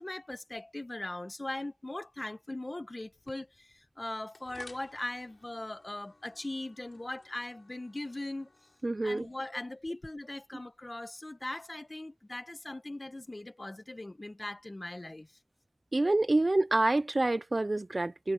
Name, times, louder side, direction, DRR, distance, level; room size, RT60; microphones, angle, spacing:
voice 1, 0.0-8.5 9.0-15.3, left 2 dB, 45° left, 1.3 m, -40 dB
sound 1, 3.0-10.9, left 2 dB, 90° left, 3.5 m, -59 dB
voice 2, 8.8-9.3 15.9-18.3, right 2 dB, 60° right, 0.4 m, -27 dB
wide cardioid pair, 40°, 0 cm